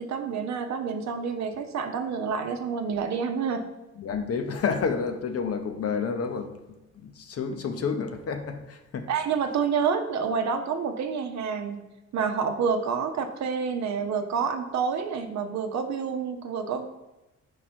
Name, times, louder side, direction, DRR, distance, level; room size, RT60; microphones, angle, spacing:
voice 1, 0.0-3.7 9.1-11.8 12.1-16.9, right 6 dB, 65° right, 6 dB, 0.8 m, -28 dB
voice 2, 4.0-6.5 6.9-9.1, left 5 dB, 50° left, 7 dB, 0.8 m, -30 dB
5.1 x 4.7 x 4.4 m, 1.0 s
cardioid pair, 90°, 30 cm